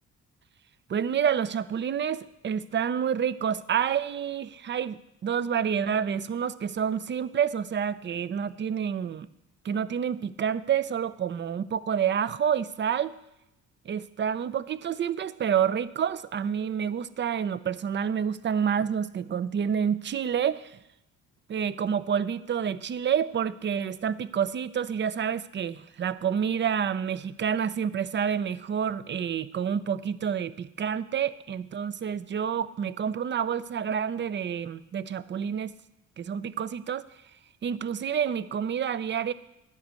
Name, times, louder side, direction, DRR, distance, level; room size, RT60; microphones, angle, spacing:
voice 1, 0.9-9.3 9.6-13.1 13.9-20.8 21.5-35.7 36.2-37.0 37.6-39.3, right 8 dB, 40° right, 16 dB, 0.5 m, -28 dB
11.0 x 5.2 x 8.2 m, 0.89 s
cardioid pair, 90°, 30 cm